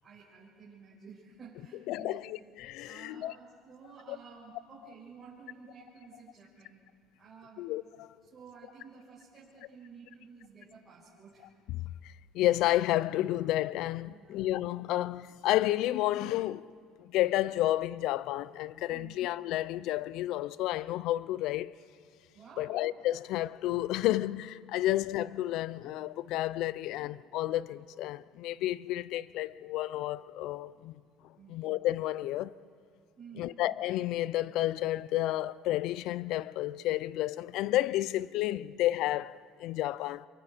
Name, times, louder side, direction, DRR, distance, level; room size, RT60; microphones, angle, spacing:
voice 1, 0.0-2.2 2.8-6.8 7.2-7.7 8.3-11.5 14.1-14.4 18.9-19.2 22.3-22.8 24.7-24.8 31.3-31.6 33.2-33.6, right 5 dB, 30° right, 5.7 m, -52 dB
voice 2, 1.9-3.3 4.1-4.2 7.6-8.1 12.0-16.7 17.0-21.7 22.6-31.0 31.5-32.5 33.4-40.3, left 15 dB, 70° left, 0.4 m, -31 dB
28.5 x 24.0 x 4.5 m
cardioid pair, 115°, 0 cm